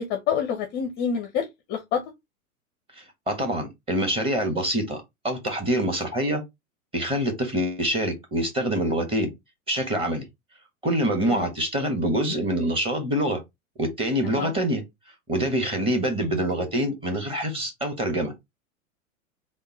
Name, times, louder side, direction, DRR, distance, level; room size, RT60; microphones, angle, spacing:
voice 1, 0.0-2.0 11.2-11.5 14.2-14.5, left 7 dB, 25° left, 0.5 m, -28 dB
voice 2, 2.9-6.4 6.9-9.3 9.7-10.2 10.8-13.4 13.8-14.8 15.3-18.3, right 1 dB, 15° right, 1.2 m, -25 dB
3.6 x 2.1 x 4.2 m
figure-of-eight pair, 95°, 42 cm